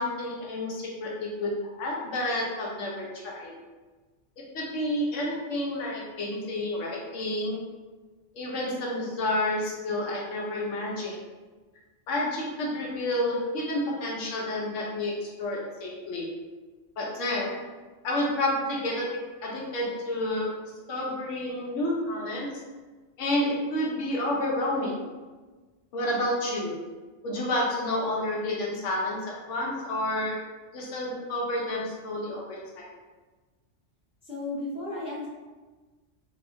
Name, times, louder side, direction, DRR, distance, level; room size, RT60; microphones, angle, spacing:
voice 1, 0.0-3.5 4.5-7.6 8.3-11.2 12.1-16.3 17.0-17.6 18.0-20.5 20.9-22.5 23.2-25.0 25.9-26.8 27.2-30.4 30.7-32.9, left 1 dB, 85° left, -3 dB, 1.0 m, -30 dB
voice 2, 34.2-35.3, left 2 dB, 5° right, -9 dB, 0.5 m, -34 dB
2.7 x 2.4 x 2.5 m, 1.3 s
omnidirectional pair, 1.2 m